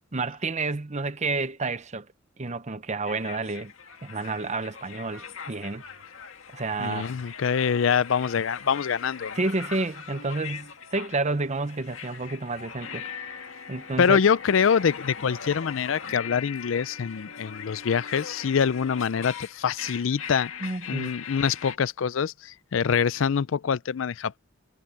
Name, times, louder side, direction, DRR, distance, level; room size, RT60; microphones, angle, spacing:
voice 1, 0.1-2.1 2.4-3.7 4.0-5.8 6.5-7.1 9.3-13.4 13.7-14.2 20.6-21.1, right 3 dB, 35° right, 0.9 m, -30 dB
sound 1, 3.0-21.8, left 7 dB, 85° left, 1.9 m, -40 dB
voice 2, 6.8-9.4 14.0-20.5 20.9-24.4, left 7 dB, 70° left, 0.4 m, -25 dB
head